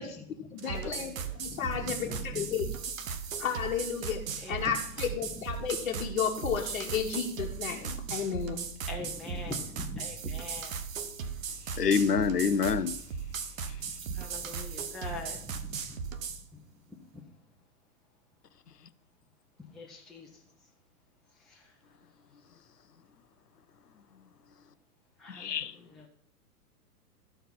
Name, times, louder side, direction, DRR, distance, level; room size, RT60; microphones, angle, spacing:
voice 1, 0.0-2.4 4.4-4.7 8.8-10.8 13.8-16.0 16.5-16.6 17.1-17.2 19.6-20.4 21.4-21.7 25.2-25.6 25.9-26.0, left 2 dB, ahead, 1.0 m, -43 dB
voice 2, 0.5-1.1 1.4-2.6 3.4-4.2 4.5-8.6, left 7 dB, 55° left, 1.4 m, -32 dB
sound 1, 0.6-16.4, right 6 dB, 55° right, 1.1 m, -37 dB
voice 3, 11.8-13.0 13.7-13.8 25.3-25.8, left 6 dB, 80° left, 0.7 m, -27 dB
13.5 x 4.6 x 5.7 m
figure-of-eight pair, 105°, 47 cm